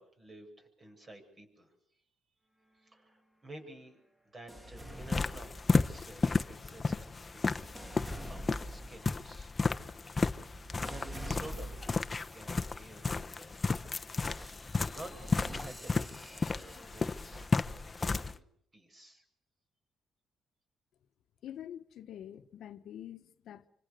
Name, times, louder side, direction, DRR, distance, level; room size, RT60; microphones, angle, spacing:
voice 1, 0.0-1.7 2.8-4.0 4.3-9.5 10.4-11.8 12.2-13.6 14.6-17.5 17.7-18.5 18.7-19.2, right 1 dB, 35° right, 7.9 m, -52 dB
sound 1, 4.5-6.1 6.7-12.2 12.8-13.2 14.2-18.3, equal, 10° right, 2.9 m, -46 dB
sound 2, 4.9-18.3, left 4 dB, 25° left, 1.0 m, -33 dB
voice 2, 21.4-23.7, left 10 dB, 70° left, 1.2 m, -46 dB
26.0 x 25.5 x 6.8 m
cardioid pair, 90°, 0 cm